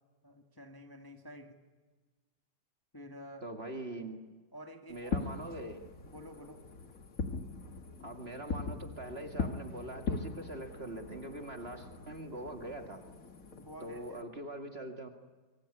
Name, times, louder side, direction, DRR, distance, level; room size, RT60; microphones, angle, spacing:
voice 1, 0.2-1.6 2.9-3.5 4.5-5.2 6.0-6.6 13.5-14.3, equal, 10° left, 4 dB, 1.6 m, -50 dB
voice 2, 3.4-4.2 4.9-5.8 8.0-13.0 13.8-15.1, right 1 dB, 30° right, 5 dB, 2.0 m, -42 dB
Fireworks, 4.9-14.2, left 4 dB, 40° left, 2.2 m, -41 dB
25.0 x 23.5 x 9.9 m, 1.3 s
omnidirectional pair, 2.3 m